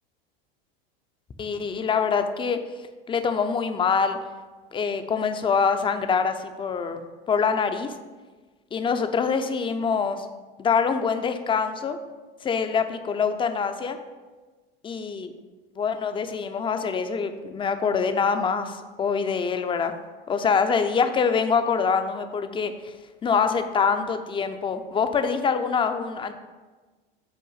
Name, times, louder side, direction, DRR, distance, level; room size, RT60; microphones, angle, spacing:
voice 1, 1.4-2.6 3.1-4.2 4.7-7.0 7.3-7.9 8.7-10.3 10.6-12.0 12.4-14.0 14.8-15.3 15.8-19.9 20.3-22.7 23.2-26.3, left 6 dB, 15° left, 8 dB, 0.5 m, -24 dB
5.7 x 4.4 x 5.6 m, 1.3 s
hypercardioid pair, 95°, 30 cm